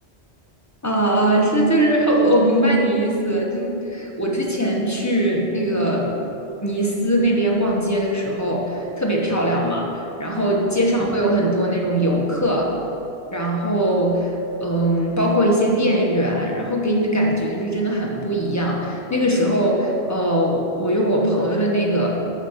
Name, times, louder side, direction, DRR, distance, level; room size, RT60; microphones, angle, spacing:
voice 1, 0.8-6.1 6.6-12.7 13.3-22.1, right 1 dB, 15° left, -2 dB, 1.0 m, -20 dB
7.3 x 6.1 x 5.7 m, 2.8 s
omnidirectional pair, 1.1 m